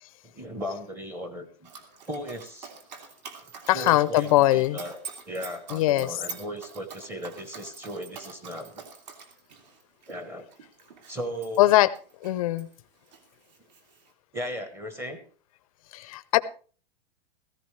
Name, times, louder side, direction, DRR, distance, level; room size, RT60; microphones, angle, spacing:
voice 1, 0.2-1.7 2.1-2.7 3.7-5.0 5.3-8.9 10.1-10.5 11.1-11.7 14.3-15.2, equal, 10° right, 9 dB, 0.9 m, -36 dB
Dog, 1.6-12.7 13.1-14.1, right 5 dB, 50° right, 2.4 m, -45 dB
voice 2, 3.7-4.8 5.7-6.2 11.6-11.9 12.2-12.7 15.9-16.4, left 16 dB, 35° left, 15 dB, 0.5 m, -21 dB
16.0 x 14.5 x 3.2 m, 0.41 s
supercardioid pair, 170°, 29 cm